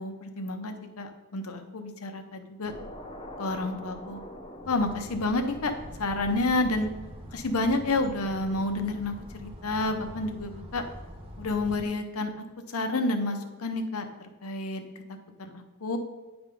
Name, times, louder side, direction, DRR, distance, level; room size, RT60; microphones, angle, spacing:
voice 1, 0.0-2.7 3.4-4.2 4.7-5.7 6.0-6.9 7.3-10.8 11.4-12.3 12.7-14.1 14.4-14.8 15.4-16.0, left 2 dB, 75° left, 6 dB, 0.9 m, -29 dB
sound 1, 2.6-7.9, left 1 dB, 25° left, 0.7 m, -45 dB
sound 2, 4.6-11.8, equal, 25° right, 0.9 m, -44 dB
9.6 x 3.5 x 5.3 m, 1.3 s
head